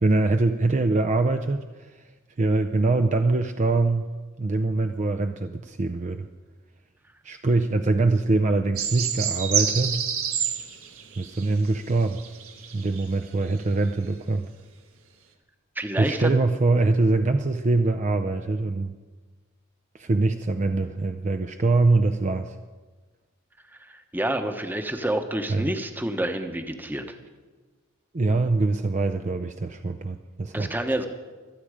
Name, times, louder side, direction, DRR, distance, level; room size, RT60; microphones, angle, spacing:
voice 1, 0.0-2.0 2.4-4.1 4.4-6.3 7.2-10.0 11.2-12.2 12.7-14.5 16.0-18.9 19.9-22.6 25.5-25.7 28.1-30.7, right 3 dB, 35° right, 7 dB, 0.5 m, -23 dB
sound 1, 8.8-13.1 13.6-13.7, right 8 dB, 80° right, 1.5 m, -29 dB
voice 2, 15.8-16.3 23.8-27.0 30.5-31.1, right 1 dB, 10° right, 6 dB, 1.0 m, -28 dB
25.5 x 8.7 x 5.0 m, 1.3 s
head